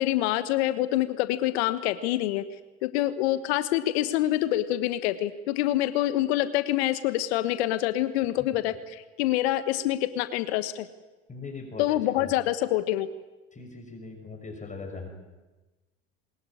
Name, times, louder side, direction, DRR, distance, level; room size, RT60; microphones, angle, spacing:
voice 1, 0.0-2.4 2.8-10.9 11.8-13.1, left 14 dB, 70° left, 12 dB, 1.3 m, -26 dB
voice 2, 11.3-12.3 13.5-15.1, left 4 dB, 20° left, 4 dB, 5.8 m, -40 dB
22.5 x 20.5 x 9.9 m, 1.2 s
hypercardioid pair, 75°, 33 cm